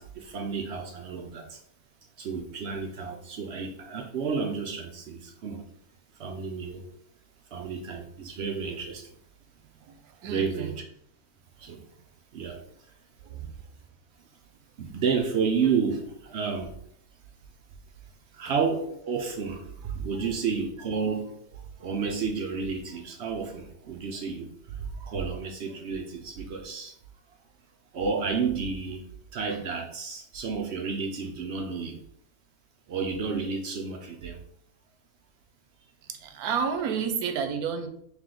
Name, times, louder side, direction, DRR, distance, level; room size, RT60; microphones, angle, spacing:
voice 1, 0.0-1.6 2.2-5.6 6.2-6.9 7.5-9.2 10.3-10.7 11.6-11.8 12.3-12.6 14.8-16.7 18.3-26.9 27.9-29.0 29.3-32.0 32.9-34.4, right 5 dB, 65° right, 3 dB, 0.7 m, -31 dB
voice 2, 9.8-10.7 13.2-13.5 18.4-18.5 20.1-20.3 36.1-37.9, right 6 dB, 85° right, 6 dB, 1.1 m, -31 dB
3.5 x 3.1 x 3.7 m, 0.68 s
omnidirectional pair, 1.5 m